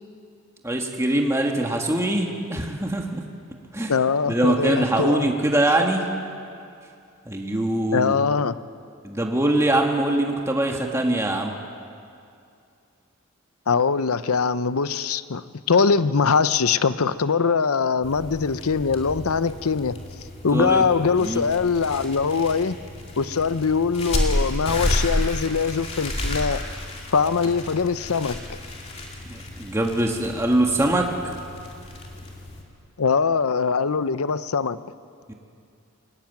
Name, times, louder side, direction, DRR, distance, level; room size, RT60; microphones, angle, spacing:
voice 1, 0.6-3.2 3.7-3.9 4.3-6.0 7.3-8.2 9.0-11.5 20.5-20.9 21.2-21.4 29.3-31.3 35.3-35.4, right 1 dB, 15° right, 2 dB, 1.5 m, -23 dB
voice 2, 3.9-5.3 7.9-8.6 13.7-20.0 20.4-22.7 23.2-26.6 27.1-28.6 33.0-34.8, left 5 dB, 85° left, 14 dB, 0.7 m, -22 dB
sound 1, 18.0-32.6, left 1 dB, 30° left, 2.9 m, -31 dB
21.0 x 19.0 x 9.0 m, 2.5 s
head